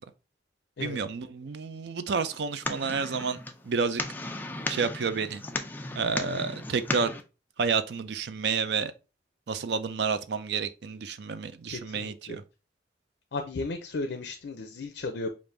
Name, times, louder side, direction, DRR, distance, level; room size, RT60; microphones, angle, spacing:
voice 1, 0.8-3.4 3.6-4.0 4.7-5.4 5.9-7.1 7.6-8.9 9.5-12.4, right 5 dB, 70° right, 0.4 m, -30 dB
sound 1, 2.2-7.2, left 2 dB, 10° left, 0.4 m, -36 dB
voice 2, 11.7-12.4 13.3-15.3, left 3 dB, 75° left, 0.5 m, -35 dB
5.1 x 2.5 x 3.2 m
head